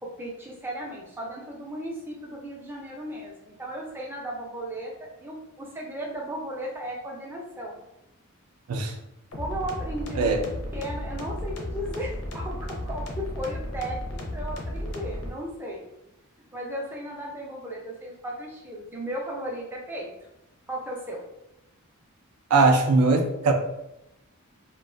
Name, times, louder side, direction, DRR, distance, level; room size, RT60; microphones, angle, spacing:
voice 1, 0.0-7.8 9.4-10.4 10.7-15.8 16.5-20.1 20.7-21.2, right 1 dB, 10° right, -2 dB, 0.4 m, -35 dB
sound 1, 9.3-15.3, left 1 dB, 70° left, 0.5 m, -34 dB
voice 2, 22.5-23.5, right 3 dB, 85° right, 4 dB, 0.4 m, -20 dB
2.4 x 2.2 x 2.4 m, 0.88 s
head